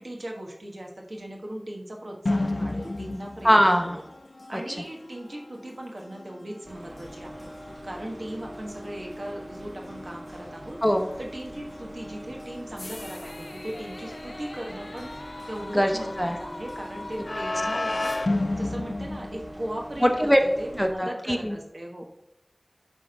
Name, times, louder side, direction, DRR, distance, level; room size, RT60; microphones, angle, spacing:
voice 1, 0.0-4.0 4.5-7.5 7.8-10.8 11.2-15.1 15.5-18.1 18.6-22.0, right 1 dB, 75° right, 0 dB, 1.3 m, -38 dB
sound 1, 2.3-20.0, left 2 dB, 75° left, 0.4 m, -35 dB
voice 2, 3.4-4.0 4.5-4.6 10.8-11.1 15.7-15.9 16.2-16.4 20.0-20.4 20.8-21.6, equal, 5° left, 4 dB, 0.9 m, -21 dB
sound 2, 6.6-20.9, equal, 55° right, 1.4 m, -43 dB
10.5 x 3.5 x 5.4 m, 0.89 s
wide cardioid pair, 40°, 0 cm